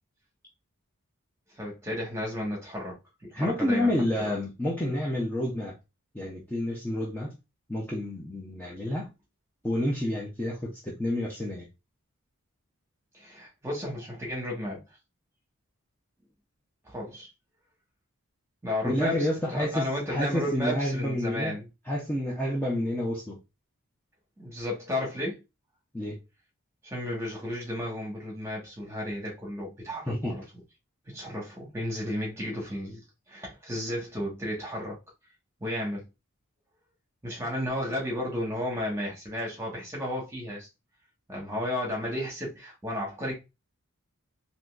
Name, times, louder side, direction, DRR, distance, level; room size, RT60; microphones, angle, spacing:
voice 1, 1.6-3.9 4.2-4.4 13.1-14.8 16.8-17.3 18.6-21.7 24.4-25.4 26.8-30.4 31.1-33.0 33.3-35.0 35.6-36.1 37.2-40.7 41.3-43.3, left 1 dB, 10° right, 1.3 m, -33 dB
voice 2, 3.3-5.7 6.1-7.3 7.7-9.1 9.6-11.7 18.8-21.6 21.9-23.4 25.9-26.2 30.1-30.4, left 1 dB, 10° left, 0.6 m, -29 dB
3.8 x 2.9 x 2.4 m
head